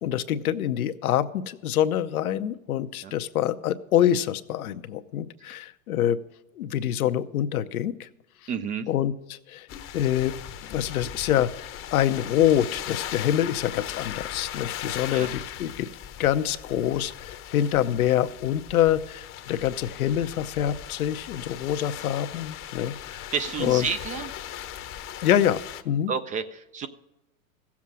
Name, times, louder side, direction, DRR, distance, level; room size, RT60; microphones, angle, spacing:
voice 1, 0.0-6.2 6.5-8.1 8.9-9.7 9.9-10.3 10.7-15.9 16.2-23.3 23.6-23.9 25.2-25.6 25.8-26.1, left 11 dB, 85° left, 10 dB, 0.9 m, -25 dB
voice 2, 8.5-8.9 15.1-15.3 23.3-24.3 26.1-26.9, right 6 dB, 20° right, 11 dB, 0.4 m, -30 dB
sound 1, 9.7-25.8, left 11 dB, 30° left, 0.8 m, -38 dB
15.5 x 7.3 x 6.1 m, 0.94 s
hypercardioid pair, 120°, 42 cm